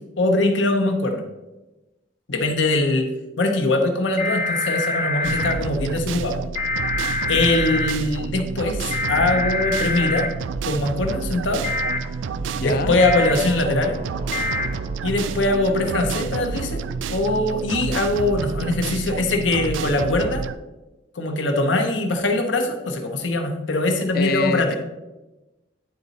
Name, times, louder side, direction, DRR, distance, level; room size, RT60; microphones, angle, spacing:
voice 1, 0.2-1.2 2.3-3.1 3.4-6.4 7.3-10.3 10.7-11.6 12.6-14.0 15.0-16.8 17.1-20.4 21.1-24.8, left 2 dB, 80° left, 4 dB, 0.9 m, -22 dB
sound 1, 4.2-5.5 6.5-7.9 8.9-10.3 11.6-12.0 13.0-13.3 14.3-14.7, left 2 dB, 35° left, 0.8 m, -25 dB
sound 2, 5.2-20.5, right 5 dB, 80° right, 0.3 m, -29 dB
Singing / Musical instrument, 10.6-19.7, right 2 dB, 30° right, 0.5 m, -40 dB
voice 2, 12.5-13.0 24.1-24.8, left 3 dB, 50° left, 12 dB, 0.4 m, -25 dB
9.4 x 4.0 x 4.1 m, 1.1 s
head